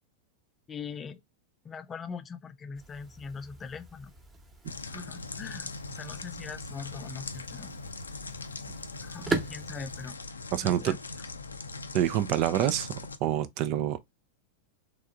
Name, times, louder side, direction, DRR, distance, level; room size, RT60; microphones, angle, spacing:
voice 1, 0.7-1.2 1.6-4.1 4.8-7.7 9.0-10.2 10.6-11.0, left 5 dB, 20° left, 0.5 m, -41 dB
sound 1, 2.7-10.1, right 3 dB, 20° right, 1.0 m, -40 dB
sound 2, 4.7-13.2, left 3 dB, 75° left, 0.4 m, -40 dB
voice 2, 10.5-10.9 11.9-12.9 13.2-14.0, right 12 dB, 40° right, 0.5 m, -26 dB
3.6 x 3.3 x 3.4 m
figure-of-eight pair, 90°, 0 cm